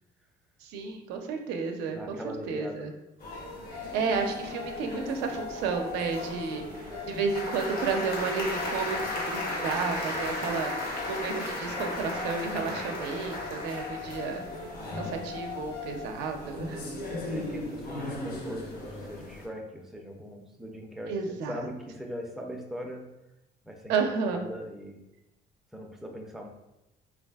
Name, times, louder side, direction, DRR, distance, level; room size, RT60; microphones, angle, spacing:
voice 1, 0.6-2.2 2.5-2.9 3.9-6.6 7.1-14.4 15.0-16.8 21.1-21.6 23.9-24.4, right 5 dB, 90° right, 4 dB, 0.4 m, -32 dB
voice 2, 1.9-2.9 17.1-21.1 21.5-23.1 23.6-25.0 25.7-26.5, equal, ahead, 1 dB, 0.4 m, -40 dB
sound 1, 3.2-19.5, left 1 dB, 60° left, 0.8 m, -36 dB
sound 2, 3.3-16.1, left 5 dB, 80° left, 1.0 m, -41 dB
3.3 x 2.4 x 2.2 m, 0.91 s
cardioid pair, 110°, 17 cm